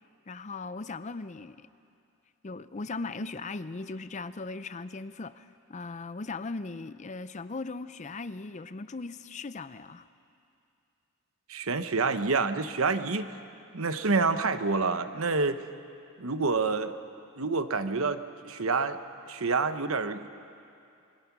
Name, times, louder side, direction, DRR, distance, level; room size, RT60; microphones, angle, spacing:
voice 1, 0.3-1.7 2.4-10.1, left 3 dB, 30° left, 13 dB, 0.5 m, -38 dB
voice 2, 11.5-13.3 13.7-15.6 16.2-16.9 17.4-19.0 19.3-20.3, right 4 dB, 65° right, 10 dB, 1.0 m, -28 dB
28.0 x 22.5 x 6.0 m, 2.5 s
head